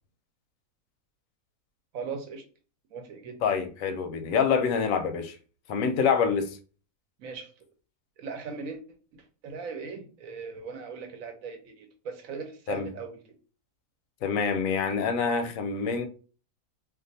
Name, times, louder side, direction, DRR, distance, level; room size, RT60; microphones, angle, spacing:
voice 1, 1.9-2.4 2.9-3.4 7.2-7.5 8.2-8.8 9.1-13.2, right 5 dB, 70° right, 1.1 m, -39 dB
voice 2, 3.4-5.4 5.7-6.6 12.7-12.9 14.2-16.1, left 6 dB, 70° left, 0.9 m, -26 dB
2.5 x 2.4 x 3.9 m
omnidirectional pair, 1.6 m